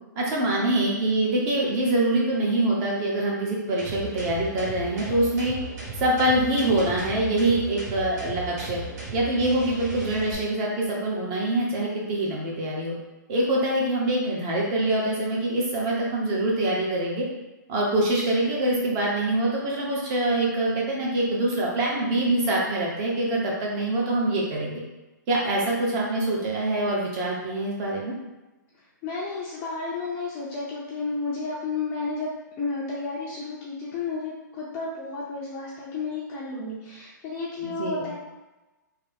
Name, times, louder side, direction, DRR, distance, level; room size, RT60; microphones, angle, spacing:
voice 1, 0.2-5.6 6.0-8.8 9.1-12.9 13.3-17.3 17.7-24.8 25.3-28.1 37.6-38.0, right 1 dB, 30° right, -3 dB, 0.9 m, -25 dB
sound 1, 3.8-10.3, right 2 dB, 55° right, 1.3 m, -36 dB
voice 2, 29.0-32.3 32.6-38.1, left 3 dB, 25° left, -7 dB, 0.5 m, -32 dB
3.3 x 2.2 x 3.4 m, 1.1 s
hypercardioid pair, 145°, 10 cm